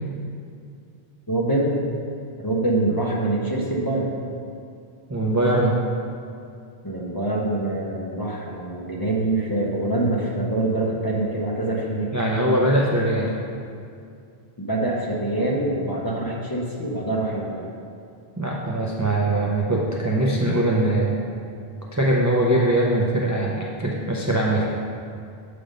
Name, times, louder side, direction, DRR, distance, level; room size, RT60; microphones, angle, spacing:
voice 1, 1.3-1.8 2.4-4.1 6.8-12.1 14.6-17.7, right 2 dB, 25° left, -3 dB, 0.7 m, -25 dB
voice 2, 5.1-5.8 12.1-13.3 18.4-21.2 21.9-24.7, right 1 dB, 25° right, -4 dB, 0.4 m, -21 dB
7.7 x 3.4 x 5.1 m, 2.4 s
omnidirectional pair, 1.1 m